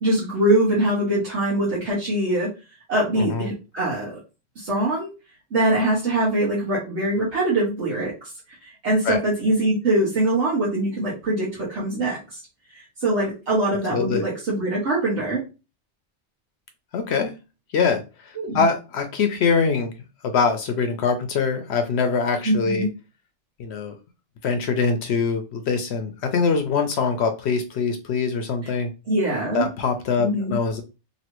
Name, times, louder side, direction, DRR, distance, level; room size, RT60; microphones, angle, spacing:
voice 1, 0.0-2.5 2.9-4.2 4.6-5.1 5.5-12.4 12.7-15.4 18.3-18.6 22.4-22.9 29.1-29.7 30.2-30.5, right 1 dB, 70° right, -5 dB, 1.3 m, -23 dB
voice 2, 3.2-3.5 9.0-9.2 13.9-14.2 16.9-17.3 17.7-19.9 20.2-22.9 23.6-23.9 24.4-28.9 29.5-30.8, left 5 dB, 70° left, 7 dB, 0.8 m, -23 dB
3.1 x 2.8 x 2.9 m, 0.30 s
omnidirectional pair, 1.2 m